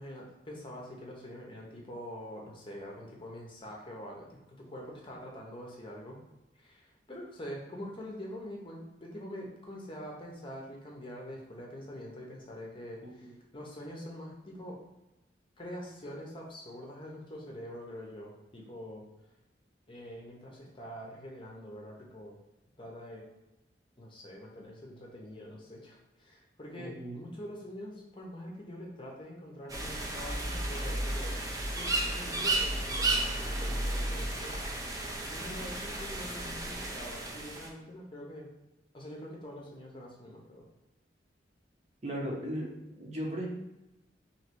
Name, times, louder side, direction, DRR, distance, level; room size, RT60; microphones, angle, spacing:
voice 1, 0.0-6.2 6.5-14.8 15.6-19.1 19.9-22.4 22.8-23.3 24.0-31.4 31.7-34.8 35.3-38.5 38.9-40.6, equal, 30° left, -1 dB, 0.7 m, -45 dB
voice 2, 13.0-13.4 26.8-27.2 42.0-43.5, equal, 40° right, -2 dB, 0.9 m, -37 dB
sound 1, 29.7-37.7, right 2 dB, 20° right, 0.5 m, -33 dB
3.2 x 2.9 x 4.4 m, 0.97 s
head